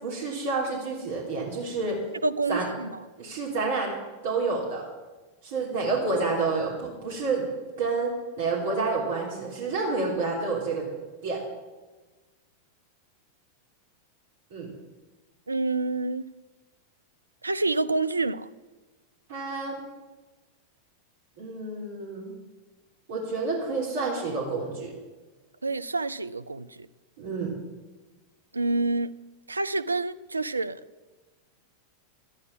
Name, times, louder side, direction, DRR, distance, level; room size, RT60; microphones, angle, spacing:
voice 1, 0.0-2.0 2.5-2.7 3.2-4.0 4.2-4.9 5.4-7.5 7.8-10.9 11.2-11.4 14.5-14.7 19.3-19.8 21.4-22.4 23.1-24.9 27.2-27.6, right 3 dB, 55° right, 3.4 m, -29 dB
voice 2, 2.2-3.0 15.5-16.3 17.4-18.5 25.6-26.9 28.5-29.1 29.5-30.8, right 3 dB, 80° right, 0.4 m, -28 dB
12.5 x 9.7 x 7.2 m
figure-of-eight pair, 90°, 0 cm